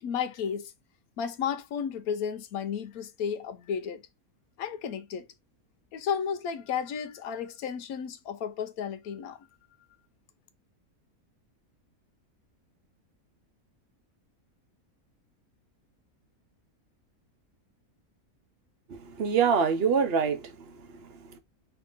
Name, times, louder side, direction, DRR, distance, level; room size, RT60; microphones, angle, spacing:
voice 1, 0.0-0.7 1.2-4.0 4.6-5.3 5.9-9.4, left 7 dB, 85° left, 1.1 m, -33 dB
voice 2, 18.9-21.4, right 6 dB, 50° right, 0.9 m, -26 dB
4.5 x 2.9 x 3.9 m
omnidirectional pair, 1.5 m